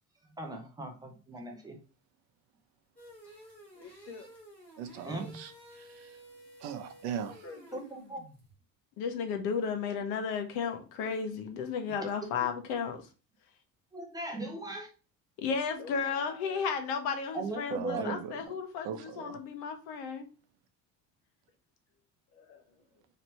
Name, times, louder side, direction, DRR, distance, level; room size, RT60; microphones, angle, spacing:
voice 1, 0.4-1.8 5.0-5.3 7.7-8.2 13.9-14.9 17.3-18.2, right 2 dB, 10° right, 0.4 m, -38 dB
sound 1, 3.0-8.5, equal, 5° left, 1.2 m, -53 dB
voice 2, 3.7-4.3 7.4-7.9 15.8-16.7 22.3-23.0, left 5 dB, 40° left, 0.7 m, -49 dB
voice 3, 4.8-6.2 6.6-7.4 17.7-18.3 18.8-19.4, right 8 dB, 90° right, 0.7 m, -39 dB
voice 4, 9.0-13.1 15.4-20.3, left 6 dB, 80° left, 1.0 m, -34 dB
3.2 x 2.9 x 4.2 m
cardioid pair, 180°, 36 cm